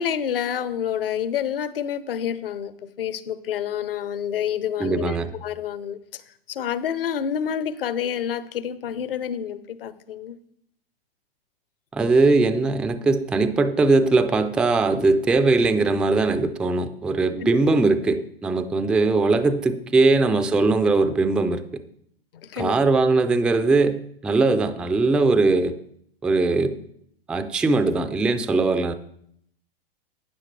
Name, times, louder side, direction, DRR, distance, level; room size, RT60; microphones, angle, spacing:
voice 1, 0.0-6.2 6.5-10.4 17.4-17.6 22.4-22.8, left 9 dB, 65° left, 15 dB, 0.9 m, -28 dB
voice 2, 4.8-5.3 11.9-21.6 22.6-25.8 26.2-26.8 27.3-28.9, right 3 dB, 5° right, 10 dB, 0.3 m, -20 dB
11.5 x 9.7 x 3.2 m, 0.69 s
figure-of-eight pair, 105°, 30 cm